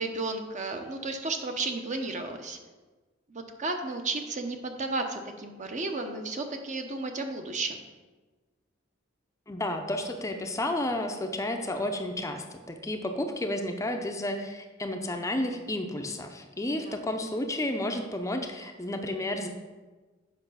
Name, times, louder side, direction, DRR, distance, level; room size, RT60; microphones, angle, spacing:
voice 1, 0.0-2.6 3.3-7.8 16.9-17.0, right 3 dB, 40° right, 5 dB, 0.8 m, -33 dB
voice 2, 9.5-19.5, left 1 dB, 15° left, 4 dB, 0.6 m, -31 dB
8.0 x 5.4 x 5.6 m, 1.3 s
head